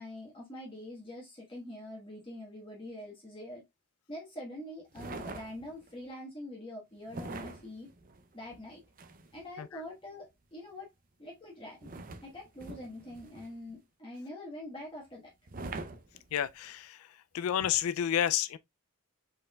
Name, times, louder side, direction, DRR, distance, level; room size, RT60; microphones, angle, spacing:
voice 1, 0.0-3.6 4.1-7.9 8.3-8.8 9.3-10.9 11.2-11.9 12.2-15.3, left 1 dB, 25° left, 1.3 m, -44 dB
sound 1, 4.9-5.9 7.1-9.5 11.8-13.7 15.5-16.7 17.6-17.8, right 3 dB, 40° right, 0.5 m, -44 dB
voice 2, 16.3-17.1 17.3-18.6, left 10 dB, 80° left, 0.3 m, -30 dB
5.3 x 4.4 x 2.3 m
head